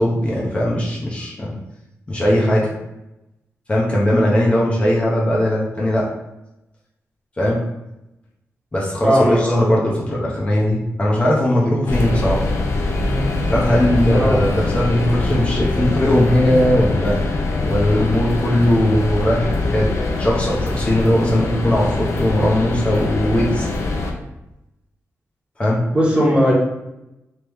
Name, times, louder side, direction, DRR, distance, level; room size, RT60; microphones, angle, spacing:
voice 1, 0.0-1.6 2.1-2.7 3.7-6.1 7.4-7.6 8.7-12.4 13.5-17.2 17.7-23.7 25.6-25.8, left 1 dB, 25° left, -5 dB, 0.7 m, -19 dB
voice 2, 9.0-9.6 14.1-14.4 25.9-26.5, equal, 20° right, -4 dB, 1.0 m, -18 dB
sound 1, 11.9-24.1, left 2 dB, 65° left, 0.5 m, -23 dB
3.1 x 2.9 x 3.4 m, 0.93 s
wide cardioid pair, 125°, 5 cm